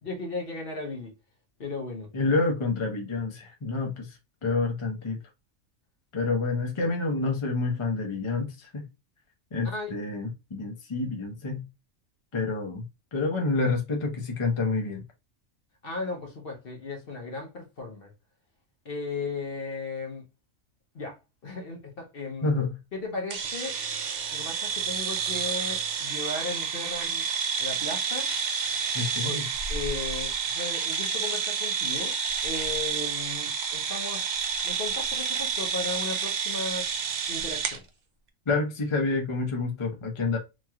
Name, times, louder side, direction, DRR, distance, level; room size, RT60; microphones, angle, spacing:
voice 1, 0.0-1.2 1.6-2.1 9.6-9.9 15.8-18.1 18.8-20.2 20.9-22.5 22.9-23.8 24.3-28.3 29.2-29.4 29.7-32.2 32.4-34.4 34.6-36.9 37.3-37.8, left 3 dB, 50° left, 1.0 m, -36 dB
voice 2, 2.1-5.2 6.1-8.9 9.5-11.7 12.3-12.8 13.1-15.0 22.4-22.7 28.9-29.4 38.5-40.4, left 3 dB, 35° left, 0.5 m, -28 dB
sound 1, 23.3-37.8, right 6 dB, 80° right, 0.4 m, -30 dB
3.1 x 2.8 x 2.3 m
omnidirectional pair, 1.4 m